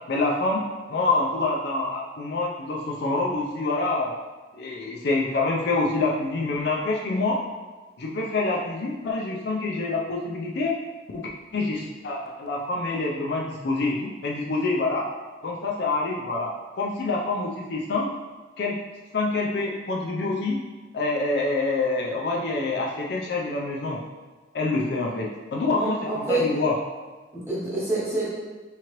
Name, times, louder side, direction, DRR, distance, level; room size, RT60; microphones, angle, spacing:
voice 1, 0.1-4.1 4.5-7.4 8.0-10.7 11.1-15.1 15.4-18.1 18.6-18.8 19.1-20.6 20.9-24.0 24.5-26.7, left 3 dB, 55° left, -2 dB, 0.4 m, -26 dB
voice 2, 25.8-26.4 27.3-28.3, right 2 dB, 10° right, -9 dB, 1.1 m, -27 dB
3.7 x 2.9 x 3.0 m, 1.3 s
head